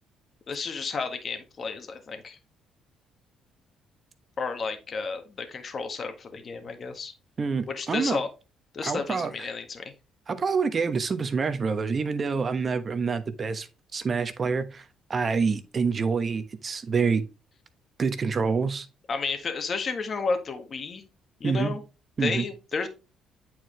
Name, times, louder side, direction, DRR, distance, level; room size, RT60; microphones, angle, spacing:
voice 1, 0.5-2.4 4.4-7.1 7.7-8.3 8.7-9.8 19.1-21.0 21.4-21.8 22.2-22.9, left 4 dB, 45° left, 1.6 m, -32 dB
voice 2, 7.4-8.2 8.8-9.5 10.3-13.7 13.9-14.8 15.1-17.2 18.0-18.9 21.4-21.7 22.2-22.4, right 5 dB, 40° right, 1.1 m, -27 dB
8.6 x 4.7 x 3.2 m
cardioid pair, 85°, 0 cm